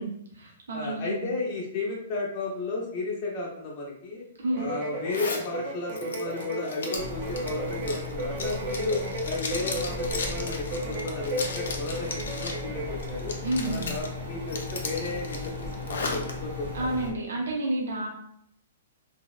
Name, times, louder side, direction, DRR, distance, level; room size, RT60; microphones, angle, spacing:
voice 1, 0.0-1.3 4.4-4.7 13.4-13.9 16.7-18.1, right 1 dB, 85° right, -1 dB, 0.5 m, -30 dB
voice 2, 0.7-4.2 4.6-13.3 13.6-17.2, left 3 dB, 30° left, -3 dB, 0.4 m, -34 dB
sound 1, 4.5-13.1, right 1 dB, 35° right, 0.4 m, -34 dB
Zipper (clothing), 5.1-5.5 5.9-12.6 13.0-14.1 14.5-16.3, left 3 dB, 85° left, 0.5 m, -36 dB
sound 2, 6.9-17.1, left 2 dB, 50° right, 0.8 m, -37 dB
2.6 x 2.0 x 2.3 m, 0.70 s
hypercardioid pair, 165°, 0 cm